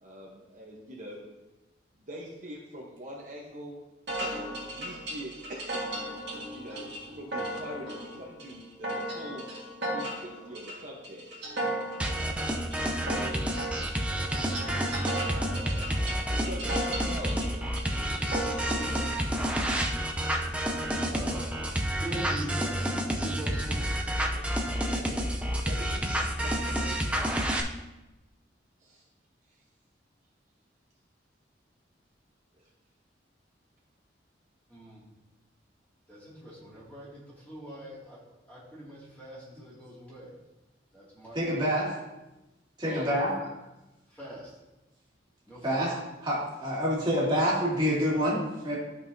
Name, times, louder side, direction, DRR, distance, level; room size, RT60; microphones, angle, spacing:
voice 1, 0.0-1.2 2.0-3.8 4.2-5.7 6.5-6.9 7.2-9.4 9.9-11.5 12.0-12.5 12.9-13.6 16.4-17.3 18.2-19.1 24.3-25.3 25.6-27.5 28.8-29.0 32.6-32.7 42.8-43.1, equal, 45° right, -3 dB, 1.0 m, -43 dB
sound 1, 4.1-19.1, right 1 dB, 65° right, 1.7 m, -36 dB
sound 2, 12.0-27.6, equal, 5° right, 0.6 m, -29 dB
voice 2, 21.0-21.6 22.0-23.9 34.7-35.0 36.1-38.2 38.5-40.3 40.9-41.5 43.1-43.5 44.1-44.5 45.5-45.9, right 1 dB, 10° left, -7 dB, 2.3 m, -42 dB
voice 3, 41.3-41.9 42.8-43.3 45.6-45.9 46.2-48.8, equal, 25° right, -6 dB, 2.3 m, -27 dB
12.0 x 5.6 x 2.7 m, 1.0 s
head